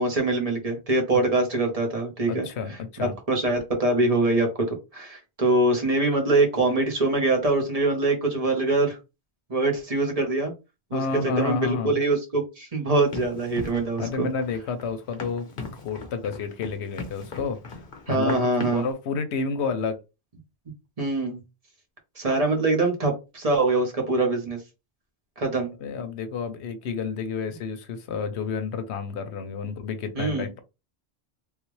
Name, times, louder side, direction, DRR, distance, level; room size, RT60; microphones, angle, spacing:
voice 1, 0.0-9.0 9.5-10.5 10.9-14.3 18.1-18.8 21.0-21.4 22.2-24.6 25.4-25.7 30.1-30.5, right 2 dB, 35° right, 1.1 m, -24 dB
voice 2, 2.3-3.1 10.9-12.0 14.0-17.8 18.1-18.4 18.7-20.0 25.8-30.6, left 5 dB, 80° left, 0.9 m, -30 dB
Run, 13.1-18.9, left 3 dB, 55° left, 1.0 m, -38 dB
3.3 x 2.4 x 3.1 m
omnidirectional pair, 1.1 m